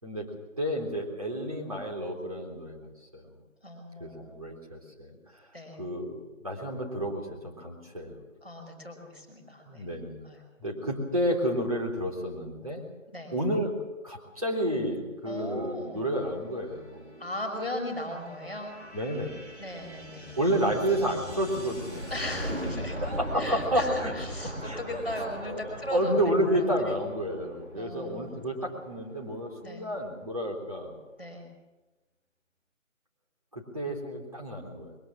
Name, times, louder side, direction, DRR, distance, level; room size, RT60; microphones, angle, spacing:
voice 1, 0.0-3.3 4.0-5.5 5.8-6.2 6.4-8.2 9.7-10.2 10.6-12.8 13.3-13.8 14.0-17.1 18.9-19.4 20.4-22.1 23.0-24.1 24.4-25.0 25.4-30.9 33.5-35.0, equal, 25° right, -2 dB, 3.7 m, -31 dB
voice 2, 3.6-4.5 5.5-5.8 8.4-9.9 10.2-10.4 13.1-13.3 15.2-16.0 17.2-18.7 19.6-20.3 22.1-23.1 23.4-26.1 26.5-26.9 27.7-28.3 29.6-29.8 31.2-31.5, left 1 dB, 10° right, -11 dB, 3.7 m, -38 dB
sound 1, 16.0-29.4, equal, 55° right, 4.4 m, -40 dB
23.0 x 17.5 x 7.6 m, 1.1 s
figure-of-eight pair, 180°, 40 cm